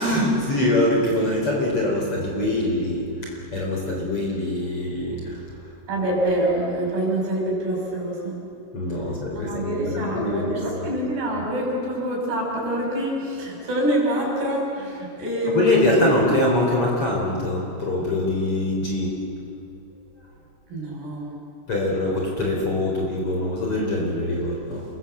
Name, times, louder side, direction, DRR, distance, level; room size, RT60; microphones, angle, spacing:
voice 1, 0.0-5.4 8.7-10.6 15.5-19.2 21.7-24.8, left 1 dB, 30° left, -2 dB, 4.7 m, -23 dB
voice 2, 5.9-8.5 9.3-16.1 20.7-21.4, right 1 dB, 60° right, -1 dB, 8.2 m, -25 dB
28.5 x 22.0 x 8.1 m, 2.5 s
omnidirectional pair, 5.3 m